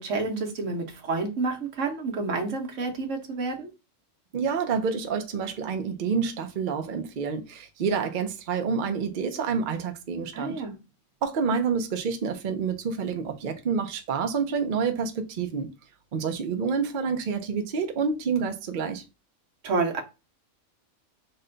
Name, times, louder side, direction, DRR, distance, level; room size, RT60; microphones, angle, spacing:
voice 1, 0.0-3.7 10.3-10.7 19.6-20.0, right 3 dB, 75° right, 1.3 m, -29 dB
voice 2, 4.3-10.6 11.2-15.7 16.1-19.0, right 5 dB, 55° right, 0.6 m, -28 dB
5.4 x 2.2 x 3.8 m
omnidirectional pair, 1.3 m